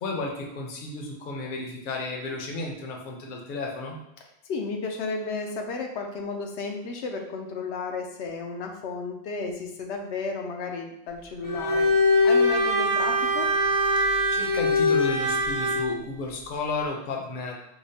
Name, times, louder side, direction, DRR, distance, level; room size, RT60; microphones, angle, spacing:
voice 1, 0.0-4.0 14.0-17.6, left 3 dB, 55° left, 1 dB, 0.7 m, -33 dB
voice 2, 4.2-11.9 12.2-13.5, left 4 dB, 90° left, 2 dB, 0.8 m, -33 dB
Bowed string instrument, 11.4-15.9, left 1 dB, 30° left, 0.4 m, -22 dB
5.0 x 2.0 x 2.7 m, 0.80 s
omnidirectional pair, 1.1 m